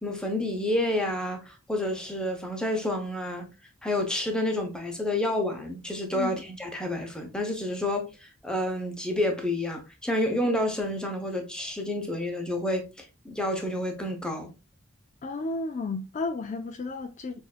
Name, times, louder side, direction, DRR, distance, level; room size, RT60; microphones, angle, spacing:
voice 1, 0.0-3.5 3.8-14.5, left 1 dB, 5° left, 0.8 m, -29 dB
voice 2, 15.2-17.4, left 3 dB, 35° left, 0.4 m, -32 dB
6.5 x 2.6 x 2.4 m
head